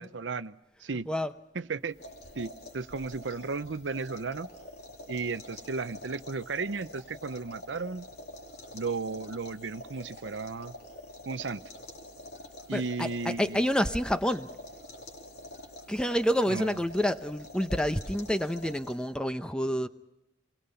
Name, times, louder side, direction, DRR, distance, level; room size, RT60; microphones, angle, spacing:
voice 1, 0.0-1.1 1.5-2.0 2.3-4.5 5.1-8.1 8.7-10.7 11.3-11.6 12.7-13.7 16.5-16.8, right 4 dB, 85° right, 0.7 m, -34 dB
sound 1, 1.8-19.2, left 1 dB, 60° left, 3.1 m, -47 dB
voice 2, 12.7-14.5 15.9-19.9, equal, 5° left, 0.8 m, -28 dB
28.0 x 21.0 x 5.7 m
head